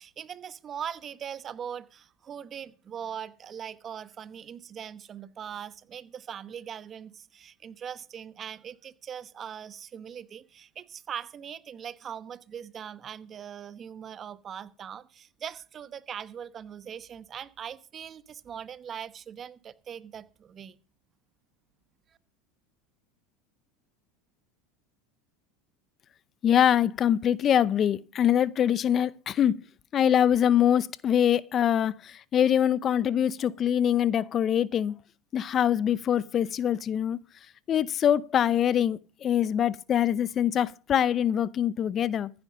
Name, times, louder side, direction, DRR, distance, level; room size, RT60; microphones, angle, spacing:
voice 1, 0.0-20.8, right 8 dB, 35° right, 1.1 m, -41 dB
voice 2, 26.4-29.6 29.9-35.0 35.3-37.2 37.7-42.3, left 9 dB, 40° left, 0.6 m, -24 dB
15.0 x 9.6 x 5.1 m
hypercardioid pair, 100°, 0 cm